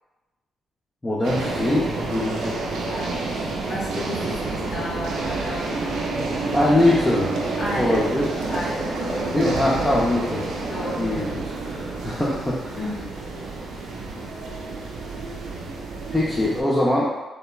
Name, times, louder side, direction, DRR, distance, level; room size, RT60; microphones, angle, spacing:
voice 1, 1.0-2.6 6.5-7.3 7.7-8.3 9.3-10.5 10.8-11.4 11.7-12.8 16.1-17.1, left 1 dB, 20° left, -5 dB, 0.4 m, -22 dB
sound 1, 1.2-16.6, right 3 dB, 85° right, 0.4 m, -29 dB
voice 2, 2.9-3.4 3.7-6.0 7.6-8.1 8.5-9.3 10.6-11.4 12.8-13.4, left 1 dB, 60° left, -6 dB, 1.0 m, -33 dB
3.2 x 2.0 x 2.3 m, 1.2 s
cardioid pair, 75°, 0 cm